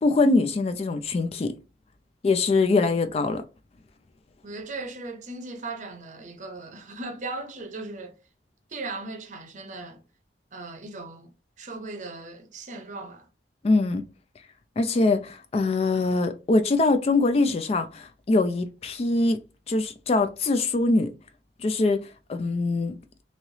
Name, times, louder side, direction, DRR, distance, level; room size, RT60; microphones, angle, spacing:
voice 1, 0.0-1.5 2.2-3.4 13.6-14.0 14.8-19.4 19.7-21.1 21.6-22.0 22.3-23.0, left 3 dB, 35° left, 0.3 m, -23 dB
voice 2, 4.4-8.2 8.7-10.0 10.5-11.3 11.6-13.3, right 3 dB, 45° right, 0.7 m, -37 dB
3.1 x 2.8 x 2.7 m
head